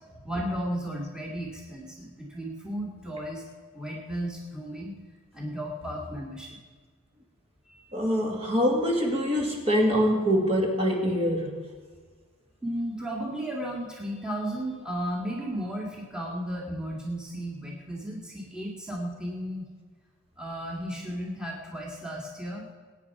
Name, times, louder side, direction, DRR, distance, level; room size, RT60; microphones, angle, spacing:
voice 1, 0.0-4.9 5.3-6.6 7.7-7.9 12.6-19.7 20.4-22.6, equal, 5° right, -2 dB, 2.1 m, -34 dB
voice 2, 7.9-11.6, equal, 25° right, 0 dB, 2.4 m, -24 dB
20.5 x 9.4 x 4.8 m, 1.5 s
head